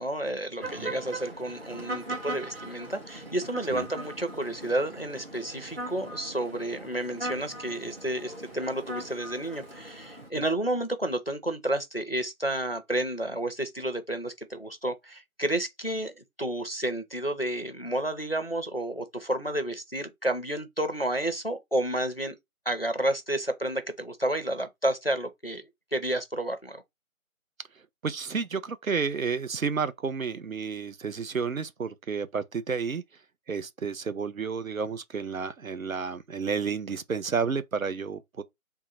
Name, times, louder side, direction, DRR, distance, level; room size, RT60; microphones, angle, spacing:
voice 1, 0.0-22.3 22.7-26.8, right 1 dB, 45° left, 0.5 m, -31 dB
sound 1, 0.6-10.3, right 1 dB, 45° right, 1.6 m, -40 dB
voice 2, 28.0-33.0 33.5-38.4, right 5 dB, 70° right, 0.6 m, -31 dB
3.7 x 2.1 x 4.2 m
figure-of-eight pair, 175°, 42 cm